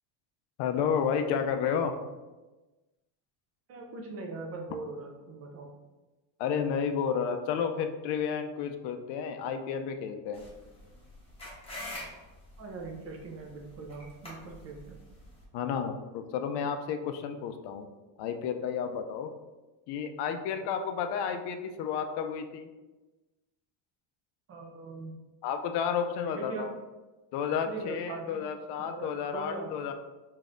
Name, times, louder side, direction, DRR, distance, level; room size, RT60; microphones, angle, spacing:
voice 1, 0.6-1.9 6.4-10.4 15.5-17.9 18.2-19.3 19.9-22.7 25.4-26.7 27.3-29.9, left 7 dB, 55° left, 7 dB, 0.5 m, -31 dB
voice 2, 3.7-5.7 12.6-15.0 24.5-25.2 26.2-26.7 27.6-28.4 28.8-29.7, right 3 dB, 30° right, 1 dB, 0.5 m, -41 dB
sound 1, 10.3-15.4, left 1 dB, 10° left, 1.0 m, -46 dB
5.0 x 2.7 x 2.5 m, 1.2 s
cardioid pair, 150°, 49 cm